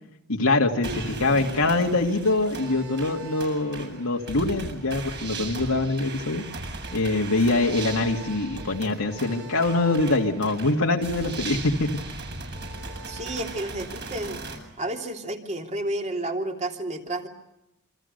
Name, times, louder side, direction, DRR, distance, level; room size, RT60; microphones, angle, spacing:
voice 1, 0.3-6.4 6.9-11.9, left 2 dB, 80° left, 0 dB, 2.2 m, -24 dB
sound 1, 0.8-14.6, right 3 dB, 50° right, 7.9 m, -37 dB
voice 2, 13.1-14.4 14.8-17.3, right 1 dB, 35° right, 3 dB, 3.1 m, -31 dB
27.5 x 25.5 x 6.7 m, 0.89 s
head